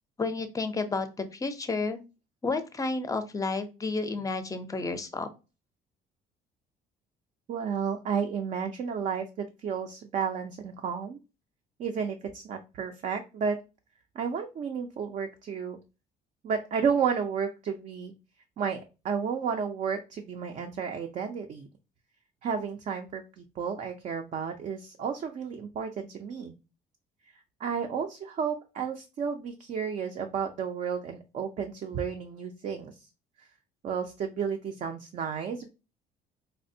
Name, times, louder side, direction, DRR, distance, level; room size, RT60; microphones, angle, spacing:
voice 1, 0.2-2.0 2.4-5.3, left 3 dB, 20° left, 9 dB, 0.5 m, -31 dB
voice 2, 7.5-9.2 9.6-11.2 11.8-13.6 14.2-15.8 16.4-18.1 18.6-21.7 22.4-26.5 27.6-32.9 33.8-35.7, right 6 dB, 45° right, 4 dB, 0.4 m, -32 dB
4.2 x 2.0 x 2.6 m, 0.30 s
cardioid pair, 110°, 17 cm